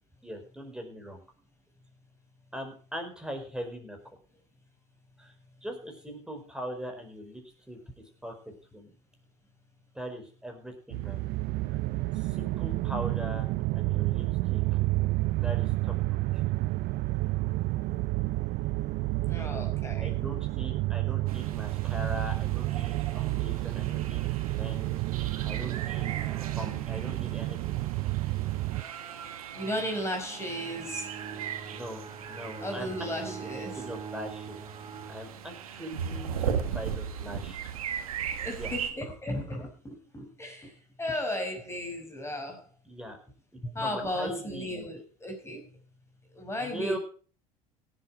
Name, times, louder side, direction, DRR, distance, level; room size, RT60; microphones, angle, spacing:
voice 1, 0.2-1.2 2.5-4.0 5.2-5.3 5.6-7.8 8.2-8.9 9.9-11.4 12.1-13.5 13.7-14.6 15.4-16.2 20.0-24.9 25.4-26.1 26.6-27.8 31.7-33.4 33.7-37.6 38.6-38.8 42.8-43.2 43.8-44.9 46.6-47.0, equal, 5° right, 3 dB, 4.9 m, -41 dB
sound 1, 10.9-28.8, right 19 dB, 60° right, 0.6 m, -30 dB
voice 2, 19.2-20.1 29.5-31.1 32.6-33.8 38.3-40.7 41.0-42.7 43.6-45.7 46.3-47.0, left 1 dB, 15° left, 3 dB, 5.4 m, -35 dB
sound 2, 21.3-38.9, right 8 dB, 85° right, 1.5 m, -38 dB
Bowed string instrument, 30.1-35.9, right 7 dB, 30° right, 2.2 m, -43 dB
17.0 x 8.1 x 4.8 m, 0.39 s
hypercardioid pair, 70°, 18 cm